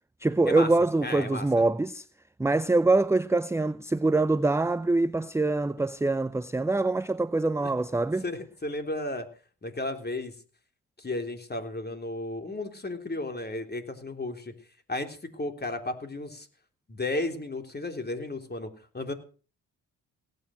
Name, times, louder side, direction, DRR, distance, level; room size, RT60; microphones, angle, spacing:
voice 1, 0.2-2.1 2.4-8.2, right 2 dB, 5° right, 0.6 m, -24 dB
voice 2, 1.0-1.6 5.8-5.9 7.6-7.7 8.2-9.3 9.6-10.3 11.0-14.5 14.9-16.5 16.9-19.1, left 2 dB, 25° left, 3.5 m, -34 dB
17.5 x 9.5 x 6.4 m
supercardioid pair, 60°, 38 cm